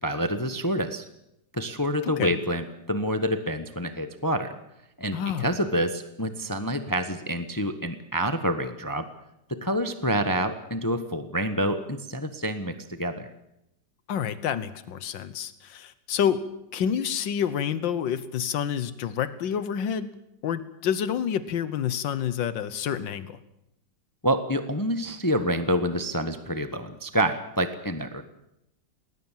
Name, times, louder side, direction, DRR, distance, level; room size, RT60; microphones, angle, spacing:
voice 1, 0.0-1.0 1.5-4.5 5.0-9.1 9.5-13.3 24.2-28.2, equal, 15° left, 9 dB, 1.0 m, -27 dB
voice 2, 2.0-2.4 5.1-5.5 14.1-16.5 16.7-20.2 20.4-23.4, left 8 dB, 85° left, 14 dB, 1.7 m, -28 dB
20.0 x 19.5 x 7.4 m, 0.82 s
omnidirectional pair, 2.0 m